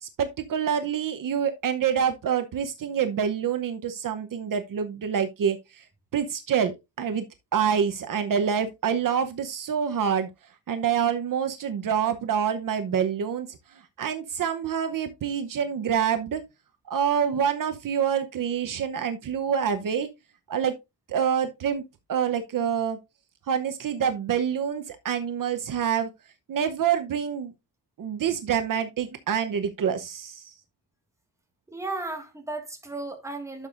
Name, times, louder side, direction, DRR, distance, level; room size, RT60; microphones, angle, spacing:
voice 1, 0.0-5.9 6.1-7.2 7.5-10.3 10.7-16.4 16.9-20.1 20.5-20.7 21.1-21.8 22.1-23.0 23.5-26.1 26.5-27.5 28.0-30.5, right 8 dB, 60° right, 0.9 m, -26 dB
voice 2, 31.7-33.7, right 2 dB, 10° right, 1.7 m, -34 dB
11.0 x 6.7 x 2.5 m
wide cardioid pair, 175°, 37 cm